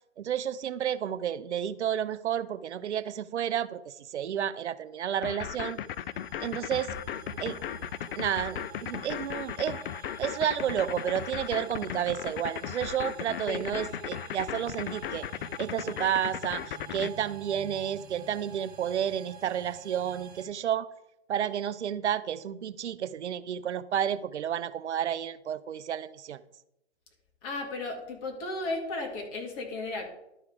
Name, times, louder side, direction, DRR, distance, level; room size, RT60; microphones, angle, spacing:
voice 1, 0.2-5.8 6.4-7.0 7.4-7.6 8.2-9.8 10.2-15.3 15.6-20.9 21.3-26.4, right 9 dB, 85° right, 0.6 m, -31 dB
sound 1, 5.2-17.1, left 10 dB, 55° left, 0.4 m, -36 dB
sound 2, 5.4-20.5, right 8 dB, 40° right, 3.2 m, -49 dB
voice 2, 27.4-30.1, left 2 dB, 30° left, 2.1 m, -34 dB
12.0 x 4.9 x 4.8 m
hypercardioid pair, 145°, 34 cm